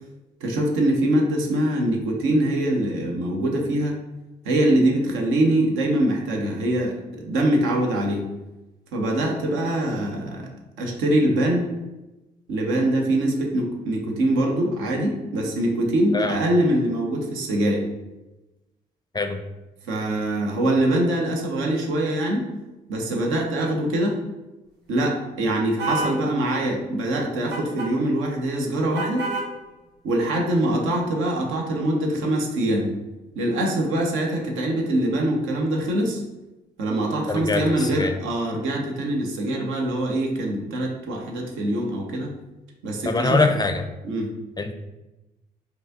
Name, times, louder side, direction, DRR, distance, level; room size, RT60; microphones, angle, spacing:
voice 1, 0.4-4.0 4.4-8.2 8.9-10.5 10.8-11.7 12.5-17.8 19.8-22.5 22.9-24.2 24.9-29.3 30.0-32.9 33.4-36.2 36.8-42.3 42.8-43.4 44.0-44.3, right 1 dB, 70° right, 1 dB, 0.8 m, -23 dB
sound 1, 25.8-26.2 27.5-27.9 28.9-29.5, right 2 dB, 55° right, 1.1 m, -27 dB
voice 2, 37.3-38.2 43.0-43.8 44.6-44.7, left 3 dB, 20° left, 6 dB, 0.5 m, -23 dB
4.7 x 2.6 x 2.7 m, 1.0 s
hypercardioid pair, 40°, 21 cm